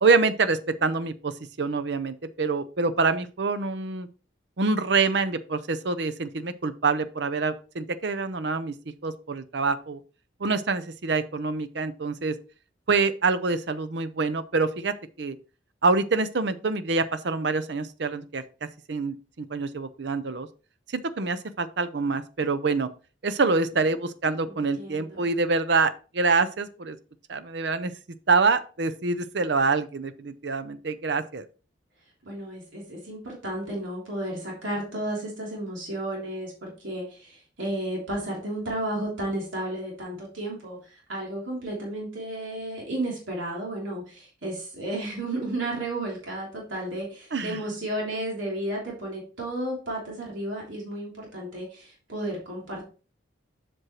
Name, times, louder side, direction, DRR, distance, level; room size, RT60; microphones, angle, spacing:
voice 1, 0.0-1.3 1.6-4.1 4.6-8.7 9.0-10.0 10.4-12.4 12.9-15.4 15.8-18.4 18.9-20.5 20.9-22.9 23.2-27.0 27.3-27.9 28.3-31.5 47.3-47.6, right 4 dB, 60° right, 11 dB, 0.6 m, -26 dB
voice 2, 24.4-25.2 32.2-52.9, right 1 dB, 85° right, -3 dB, 3.0 m, -33 dB
7.8 x 6.2 x 3.0 m, 0.36 s
head